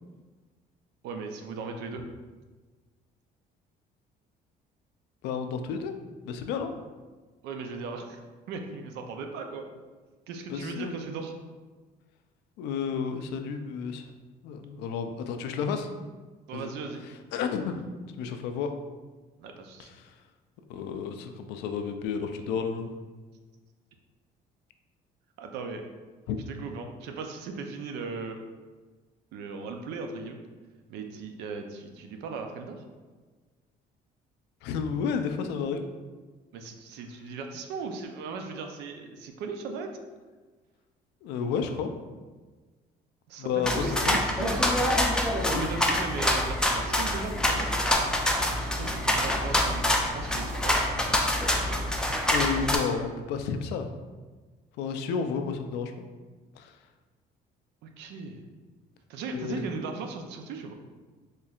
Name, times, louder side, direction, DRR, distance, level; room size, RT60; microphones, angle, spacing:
voice 1, 1.0-2.0 7.4-8.2 8.5-9.7 10.3-11.3 16.5-17.0 19.4-19.9 25.4-25.8 26.5-28.4 29.3-30.5 30.9-32.8 36.5-39.9 43.3-44.7 45.5-47.7 48.6-50.8 57.8-58.4 59.1-60.7, right 4 dB, 85° right, 4 dB, 0.5 m, -37 dB
voice 2, 5.2-5.9 6.2-6.7 10.5-10.9 12.6-14.1 14.4-15.9 16.5-16.7 17.3-17.8 18.2-18.7 19.8-20.1 20.7-22.9 26.3-26.4 34.6-35.8 41.2-41.9 43.4-44.2 45.5-45.7 52.3-53.9 54.8-55.9 56.6-56.7 59.3-59.6, left 6 dB, 90° left, 7 dB, 0.4 m, -31 dB
sound 1, 43.6-52.8, left 1 dB, 5° left, 0.4 m, -26 dB
4.3 x 3.1 x 2.4 m, 1.3 s
cardioid pair, 110°, 17 cm